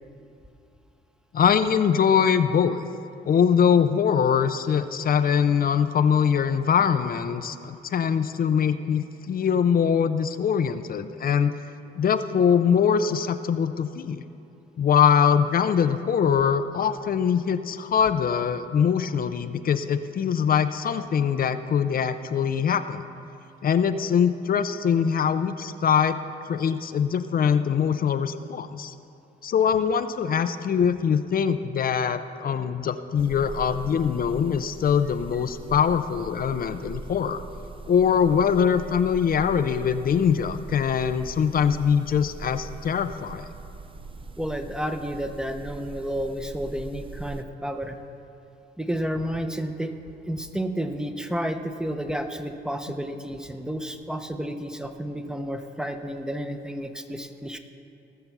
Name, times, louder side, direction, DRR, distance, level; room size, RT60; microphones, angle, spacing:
voice 1, 1.3-2.9 3.2-11.5 12.0-14.2 14.8-23.1 23.6-26.2 26.5-28.9 29.4-37.4 37.9-43.5, left 7 dB, 45° left, 11 dB, 0.6 m, -23 dB
sound 1, 33.2-47.4, right 3 dB, 25° right, 0.6 m, -41 dB
voice 2, 44.4-48.0 48.8-49.9 50.2-57.6, equal, 5° right, 6 dB, 0.9 m, -31 dB
18.0 x 6.7 x 6.0 m, 2.7 s
cardioid pair, 90°, 20 cm